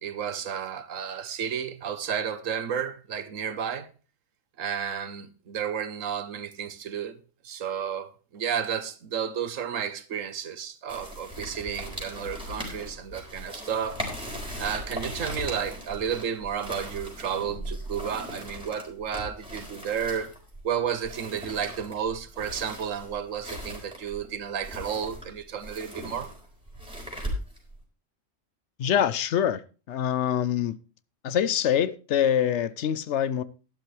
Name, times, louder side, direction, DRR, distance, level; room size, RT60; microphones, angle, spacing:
voice 1, 0.0-3.9 4.6-7.2 7.4-14.0 14.6-20.3 20.6-26.3, right 8 dB, 90° right, 1.4 m, -32 dB
sound 1, 10.9-27.8, equal, 5° right, 4.1 m, -38 dB
voice 2, 28.8-29.6 29.9-30.7 31.2-33.4, left 9 dB, 70° left, 0.9 m, -24 dB
12.0 x 11.5 x 3.2 m
omnidirectional pair, 1.3 m